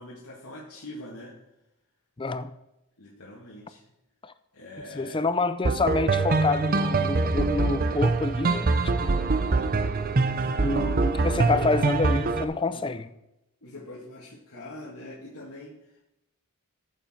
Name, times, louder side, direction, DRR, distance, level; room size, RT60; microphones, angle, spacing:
voice 1, 0.0-1.3 3.0-3.8 4.5-5.2 9.1-10.0 10.2-10.7 11.3-11.8 12.7-13.0 13.6-16.0, left 1 dB, 85° left, 2.0 m, -43 dB
voice 2, 2.2-2.5 4.2-4.3 4.9-8.7 9.0-9.2 10.6-13.1, left 3 dB, 20° left, 0.4 m, -28 dB
sound 1, 5.6-12.4, right 3 dB, 40° right, 0.6 m, -24 dB
14.0 x 7.3 x 4.4 m
head